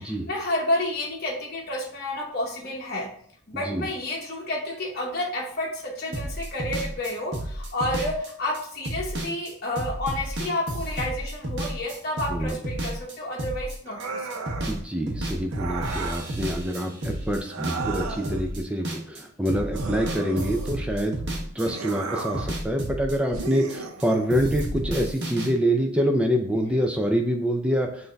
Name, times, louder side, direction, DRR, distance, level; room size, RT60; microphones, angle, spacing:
voice 1, 0.0-3.1 3.5-14.2 26.5-26.8, left 1 dB, 45° left, -3 dB, 0.8 m, -30 dB
voice 2, 3.5-3.8 12.3-12.6 14.7-28.1, equal, 5° right, 3 dB, 0.4 m, -26 dB
sound 1, 6.1-14.8 15.1-19.2 19.5-24.1 24.3-25.5, right 1 dB, 50° right, 0.9 m, -32 dB
sound 2, 13.9-14.8 15.5-16.3 17.4-18.5 19.7-20.9 21.6-22.6 23.3-24.3, right 4 dB, 75° right, 0.6 m, -34 dB
5.8 x 2.7 x 3.3 m, 0.62 s
head